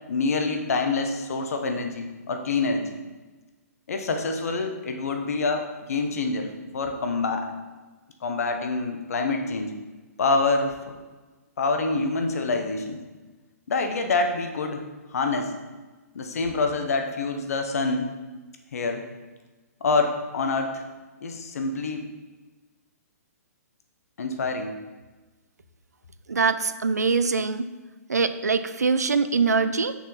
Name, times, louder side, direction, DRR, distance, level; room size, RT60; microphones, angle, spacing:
voice 1, 0.1-2.9 3.9-7.5 8.2-9.7 10.2-10.7 11.6-13.0 13.7-14.8 15.1-15.5 16.1-18.1 18.7-19.0 19.8-20.8 21.2-22.1 24.2-24.8, left 3 dB, 65° left, 5 dB, 1.0 m, -26 dB
voice 2, 26.3-27.7 28.1-30.0, right 4 dB, 85° right, 12 dB, 0.4 m, -23 dB
6.1 x 5.6 x 4.1 m, 1.2 s
figure-of-eight pair, 125°, 9 cm